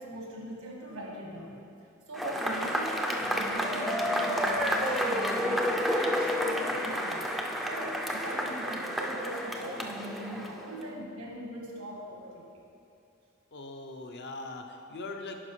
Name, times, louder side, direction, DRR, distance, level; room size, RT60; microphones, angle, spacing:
voice 1, 0.0-1.6 2.1-7.3 7.6-12.4, equal, 90° right, -2 dB, 1.5 m, -40 dB
Cheering / Applause / Crowd, 2.1-10.8, equal, ahead, 0.4 m, -30 dB
voice 2, 13.5-15.4, left 2 dB, 55° left, 4 dB, 0.6 m, -41 dB
9.8 x 5.5 x 3.2 m, 2.5 s
head